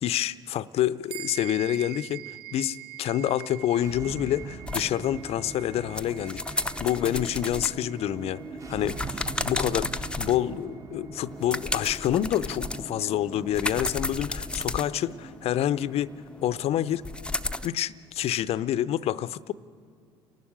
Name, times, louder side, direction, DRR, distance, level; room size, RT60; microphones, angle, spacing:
voice 1, 0.0-2.2 2.5-8.4 8.7-16.1 16.4-17.0 17.6-19.5, left 11 dB, 50° left, 0.6 m, -28 dB
sound 1, 1.1-10.8, right 17 dB, 70° right, 0.7 m, -45 dB
sound 2, 3.8-18.7, right 4 dB, 25° right, 1.4 m, -43 dB
sound 3, 4.7-10.6 11.2-17.7, left 2 dB, 5° left, 0.7 m, -34 dB
29.0 x 11.5 x 8.7 m
hypercardioid pair, 65°, 13 cm